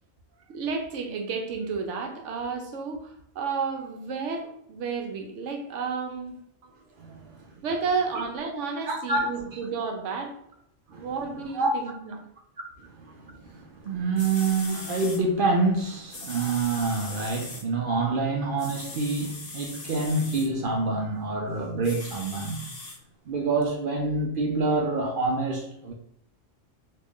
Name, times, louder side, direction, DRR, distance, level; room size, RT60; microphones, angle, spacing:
voice 1, 0.5-6.3 7.6-10.4 10.9-12.2, right 5 dB, 75° right, 1.0 m, -31 dB
voice 2, 7.0-7.5 8.1-8.2 8.9-9.6 10.9-11.1 11.5-11.7 12.8-22.6 23.3-25.9, right 3 dB, 60° right, 0.6 m, -27 dB
sound 1, 13.9-14.0 14.2-15.2 16.1-17.6 18.6-20.5 21.8-23.0 23.6-23.7, left 3 dB, 40° left, 0.7 m, -40 dB
3.1 x 2.5 x 3.6 m
omnidirectional pair, 1.3 m